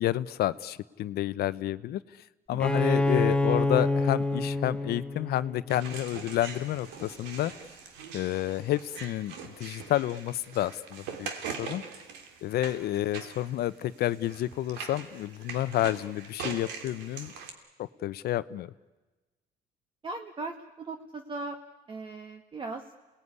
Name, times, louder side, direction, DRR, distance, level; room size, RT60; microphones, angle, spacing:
voice 1, 0.0-2.0 2.5-7.5 8.1-11.3 11.6-11.8 12.4-17.3 17.8-18.7, left 13 dB, 70° left, 15 dB, 0.8 m, -30 dB
Bowed string instrument, 2.6-6.2, left 2 dB, 5° left, 0.9 m, -27 dB
sound 1, 5.7-17.5, right 6 dB, 90° right, 2.9 m, -42 dB
voice 2, 20.0-21.6 21.9-22.9, right 3 dB, 30° right, 5 dB, 1.6 m, -39 dB
28.0 x 19.0 x 9.7 m, 1.2 s
cardioid pair, 110°, 17 cm